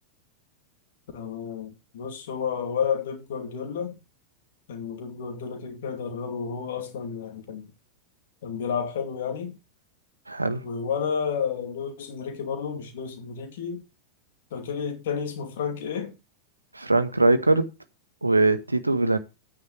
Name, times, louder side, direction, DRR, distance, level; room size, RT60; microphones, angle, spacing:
voice 1, 1.1-4.0 4.7-7.7 8.4-9.6 10.6-13.8 14.5-16.2, left 6 dB, 55° left, 2.7 m, -31 dB
voice 2, 10.3-10.7 16.7-17.7 18.2-19.2, right 2 dB, 80° right, 1.1 m, -21 dB
11.5 x 9.6 x 3.3 m
figure-of-eight pair, 90°, 0 cm